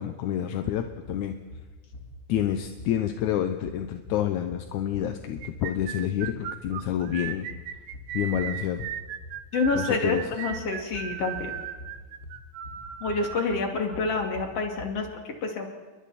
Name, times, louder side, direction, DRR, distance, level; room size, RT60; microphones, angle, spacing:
voice 1, 0.0-1.4 2.3-7.5 8.1-8.9 9.8-10.2, left 10 dB, 70° left, 7 dB, 2.0 m, -28 dB
sound 1, 0.6-14.9, left 2 dB, 25° left, 2.7 m, -45 dB
sound 2, 5.4-13.4, right 10 dB, 90° right, 2.7 m, -36 dB
voice 2, 9.5-11.5 13.0-15.7, left 4 dB, 45° left, 2 dB, 3.3 m, -28 dB
29.5 x 22.5 x 4.2 m, 1.4 s
omnidirectional pair, 4.1 m